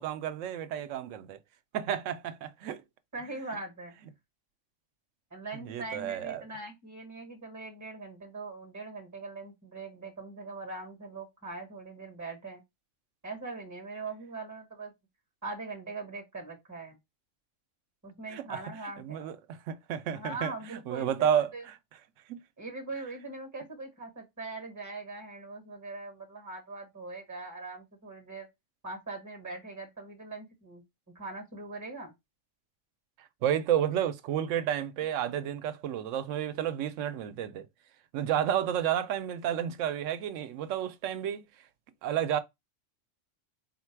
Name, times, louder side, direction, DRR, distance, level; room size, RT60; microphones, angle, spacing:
voice 1, 0.0-1.4 1.7-2.8 5.7-6.4 18.3-18.6 19.0-19.4 19.7-21.8 22.3-22.4 33.4-37.7 38.1-41.5 42.0-42.4, right 10 dB, 90° right, 0.9 m, -31 dB
voice 2, 3.1-3.9 5.3-12.6 13.2-14.9 15.4-17.0 18.0-19.3 20.1-21.6 22.6-28.5 28.8-30.8 31.1-32.1, right 3 dB, 15° right, 1.1 m, -41 dB
4.2 x 2.2 x 4.4 m
omnidirectional pair, 1.2 m